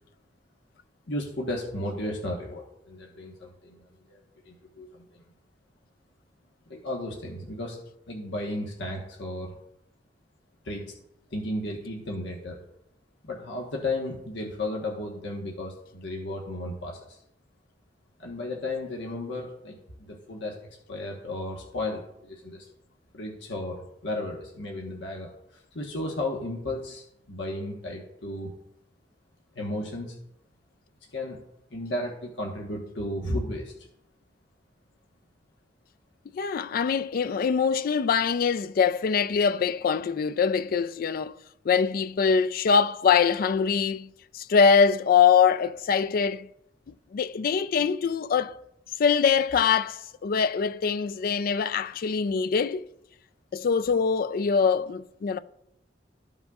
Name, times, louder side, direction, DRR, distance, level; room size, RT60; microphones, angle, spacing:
voice 1, 1.1-5.2 6.7-7.8 8.1-9.5 10.6-10.9 11.3-12.6 13.2-17.2 18.2-22.7 23.1-28.5 29.5-30.2 31.1-31.4 31.7-33.7, left 1 dB, 85° left, 1.2 m, -34 dB
voice 2, 36.3-41.3 41.7-44.1 44.3-46.5 47.1-48.6 49.0-52.8 53.5-55.4, left 6 dB, 55° left, 0.3 m, -23 dB
13.5 x 5.4 x 2.4 m
head